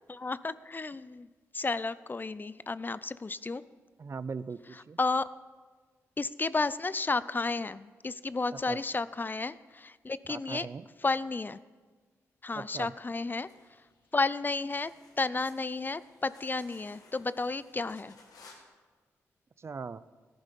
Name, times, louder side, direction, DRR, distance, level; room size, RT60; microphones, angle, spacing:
voice 1, 0.1-1.3 1.5-3.6 5.0-5.3 6.2-10.7 11.0-11.6 12.4-13.5 14.1-14.9 15.2-18.1, left 3 dB, 30° left, 17 dB, 0.4 m, -32 dB
voice 2, 4.0-5.0 8.5-8.8 10.3-10.9 12.5-12.9 19.6-20.0, right 5 dB, 45° right, 17 dB, 0.5 m, -40 dB
sound 1, 13.3-18.6, left 3 dB, 80° left, 1.9 m, -59 dB
14.0 x 11.0 x 5.3 m, 1.4 s
supercardioid pair, 50°, 6 cm